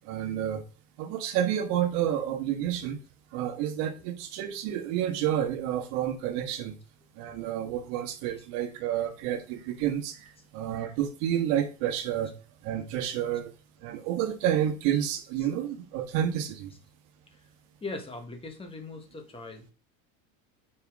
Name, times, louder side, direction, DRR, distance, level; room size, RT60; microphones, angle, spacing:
voice 1, 0.0-0.6 1.0-3.0 3.3-6.8 7.1-12.3 12.6-13.5 13.8-16.7, right 10 dB, 60° right, 1.5 m, -30 dB
voice 2, 17.8-19.7, left 3 dB, 10° left, 1.3 m, -40 dB
8.2 x 5.5 x 3.6 m
supercardioid pair, 135°, 45 cm